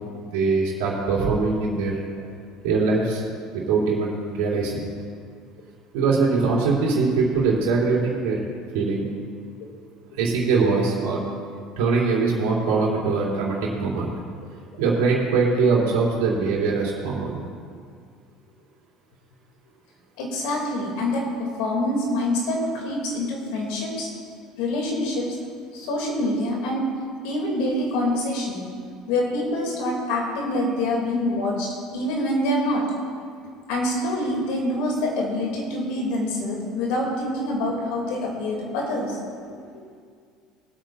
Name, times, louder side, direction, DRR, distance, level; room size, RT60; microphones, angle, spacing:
voice 1, 0.3-2.0 2.6-3.2 3.5-4.9 5.9-8.4 8.7-9.1 10.1-11.2 11.8-14.1 14.8-17.4, right 4 dB, 80° right, -4 dB, 3.1 m, -22 dB
voice 2, 20.2-24.1 24.6-25.4 25.7-26.9 27.2-28.6 29.1-32.9 33.7-39.2 39.7-39.8, left 1 dB, 75° left, -1 dB, 2.9 m, -26 dB
19.5 x 8.7 x 2.7 m, 2.1 s
supercardioid pair, 85°, 0 cm